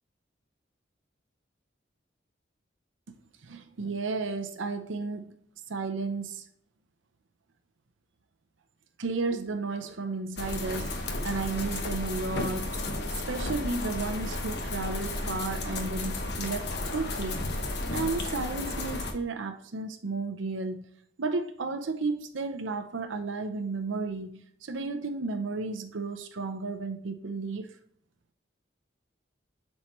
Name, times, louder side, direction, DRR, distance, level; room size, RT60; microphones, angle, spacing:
voice 1, 3.4-5.3 5.7-6.5 9.0-12.8 13.1-17.5 17.9-20.9 21.2-27.7, right 3 dB, 85° right, 0.6 m, -33 dB
sound 1, 10.4-19.1, left 2 dB, 60° left, 1.1 m, -33 dB
7.7 x 4.4 x 3.1 m
head